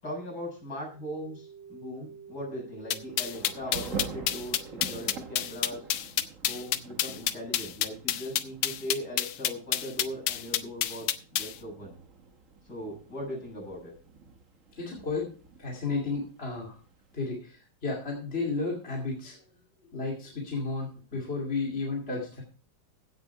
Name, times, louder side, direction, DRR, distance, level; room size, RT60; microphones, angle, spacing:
voice 1, 0.0-5.9 6.4-11.9 12.6-13.9 21.1-21.2, equal, 50° left, -2 dB, 7.3 m, -39 dB
sound 1, 0.9-5.9, right 6 dB, 75° right, 3.2 m, -50 dB
Thunder / Rain, 2.8-17.3, right 5 dB, 45° right, 1.4 m, -46 dB
sound 2, 2.9-11.5, left 11 dB, 80° left, 1.6 m, -28 dB
voice 2, 14.8-15.3 15.6-16.8 17.1-19.4 19.9-22.4, left 3 dB, 30° left, -2 dB, 2.7 m, -33 dB
16.0 x 6.8 x 4.7 m, 0.38 s
omnidirectional pair, 2.2 m